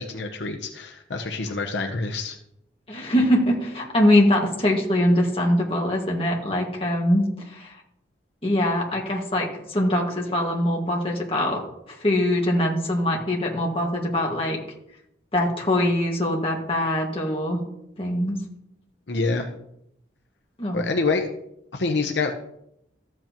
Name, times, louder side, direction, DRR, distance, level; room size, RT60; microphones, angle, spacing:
voice 1, 0.0-2.4 19.1-19.5 20.7-21.3 21.7-22.3, left 3 dB, 70° left, 3 dB, 0.8 m, -26 dB
voice 2, 2.9-7.7 8.4-14.6 15.3-17.6 18.0-18.4 20.6-20.8, left 1 dB, 30° left, -1 dB, 1.8 m, -23 dB
13.5 x 7.9 x 3.0 m, 0.78 s
head